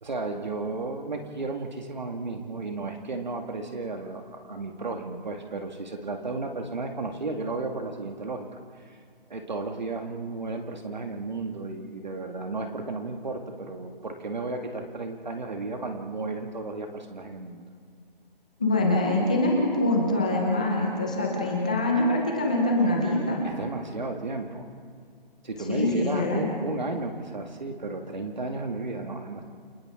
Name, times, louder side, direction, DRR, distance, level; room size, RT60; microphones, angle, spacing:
voice 1, 0.0-8.5 8.9-9.0 9.3-17.6 23.4-24.7 25.4-29.4, right 3 dB, 50° right, 3 dB, 2.1 m, -33 dB
voice 2, 18.6-23.5 25.7-26.4, left 1 dB, 10° left, -1 dB, 1.0 m, -24 dB
29.0 x 29.0 x 3.8 m, 2.1 s
hypercardioid pair, 175°, 29 cm